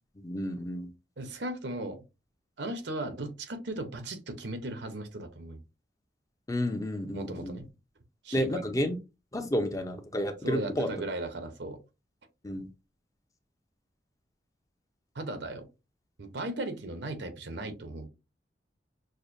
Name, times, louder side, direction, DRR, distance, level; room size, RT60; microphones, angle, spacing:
voice 1, 0.2-0.9 6.5-7.6 8.3-9.0 9.3-11.0 12.4-12.7, left 1 dB, 20° left, 0.6 m, -31 dB
voice 2, 1.2-2.0 2.6-5.6 7.1-7.7 8.2-8.5 10.4-11.8 15.1-15.6 16.2-18.1, right 2 dB, 75° right, 0.8 m, -36 dB
6.5 x 2.2 x 2.6 m
head